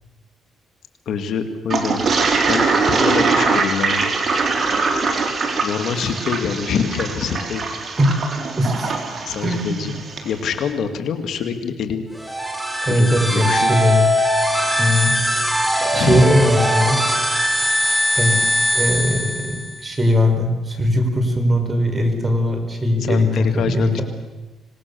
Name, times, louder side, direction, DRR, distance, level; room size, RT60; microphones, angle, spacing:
voice 1, 1.1-2.0 2.4-4.1 5.6-7.6 9.3-10.0 10.2-12.0 12.9-13.8 15.9-16.3 23.0-24.0, left 6 dB, 70° left, 7 dB, 2.3 m, -25 dB
Toilet flush, 1.7-10.3, right 4 dB, 45° right, 3.8 m, -22 dB
voice 2, 8.6-8.9 9.4-9.9 12.8-14.1 14.8-15.2 15.5-17.0 18.2-18.4 18.7-24.0, left 1 dB, 25° right, 5 dB, 5.1 m, -19 dB
sound 1, 12.1-19.8, equal, 10° right, 3.2 m, -20 dB
26.0 x 19.5 x 7.0 m, 1.1 s
cardioid pair, 90°, 0 cm